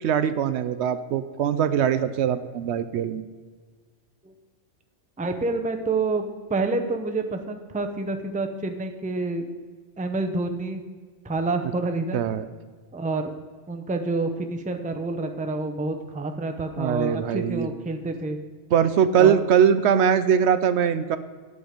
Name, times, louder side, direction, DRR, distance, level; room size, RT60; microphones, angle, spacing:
voice 1, 0.0-3.2 12.1-12.5 16.8-17.7 18.7-21.2, right 8 dB, 70° right, 12 dB, 0.8 m, -21 dB
voice 2, 5.2-9.5 10.0-10.8 11.2-12.2 12.9-13.3 13.7-18.4 19.2-19.4, right 3 dB, 10° right, 6 dB, 0.5 m, -28 dB
9.6 x 7.8 x 5.0 m, 1.5 s
omnidirectional pair, 1.2 m